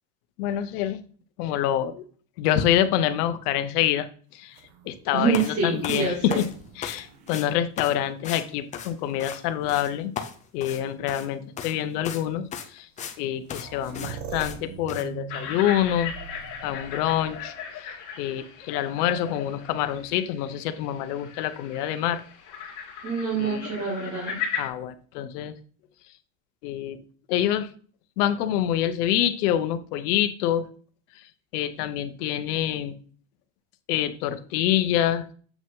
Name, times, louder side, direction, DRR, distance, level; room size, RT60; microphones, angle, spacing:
voice 1, 0.4-1.1 1.4-2.0 2.4-4.1 4.3-4.6 4.9-6.4 6.8-10.1 10.5-12.9 13.2-16.1 16.6-22.2 23.3-23.7 24.6-25.5 26.6-27.0 27.3-27.7 28.2-30.7 31.5-33.0 33.9-35.2, left 11 dB, 70° left, 10 dB, 1.1 m, -26 dB
sound 1, 4.4-8.3 9.0-9.7 10.8-10.9 11.6-11.8 13.0-13.1 13.2-17.7 19.6-20.3, right 7 dB, 65° right, 1.7 m, -44 dB
voice 2, 5.1-6.4 23.0-24.4, right 5 dB, 30° right, -5 dB, 2.6 m, -26 dB
sound 2, 5.3-5.5 5.8-7.0 7.3-7.5 7.8-8.0 8.2-8.4 8.7-9.4 9.7-9.9 10.2-11.3 11.6-11.7 12.0-12.2 12.5-13.2 13.5-13.7 13.9-14.1 14.4-14.6 14.9-15.0, left 8 dB, 15° left, 0.4 m, -36 dB
sound 3, 15.3-24.7, left 7 dB, 40° left, 2.1 m, -37 dB
8.0 x 5.0 x 3.7 m, 0.43 s
supercardioid pair, 155°, 48 cm